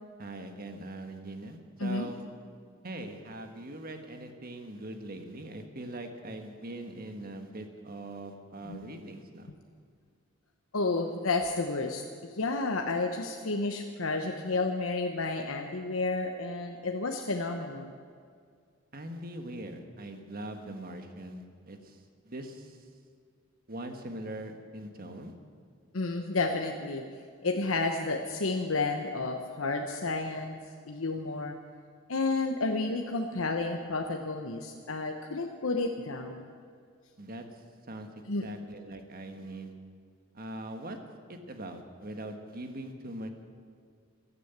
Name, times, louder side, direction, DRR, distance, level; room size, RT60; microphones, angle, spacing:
voice 1, 0.2-2.2 2.8-9.5 18.9-22.0 22.2-22.8 23.7-25.3 37.2-37.4 37.9-38.1 38.4-39.7 40.3-41.0 41.3-43.3, right 1 dB, 45° right, 6 dB, 1.6 m, -41 dB
voice 2, 10.7-12.0 12.3-17.9 25.9-27.0 27.4-30.6 30.8-31.5 32.1-36.5 38.3-38.5, left 3 dB, 85° left, 3 dB, 1.0 m, -31 dB
14.0 x 12.5 x 8.1 m, 2.2 s
head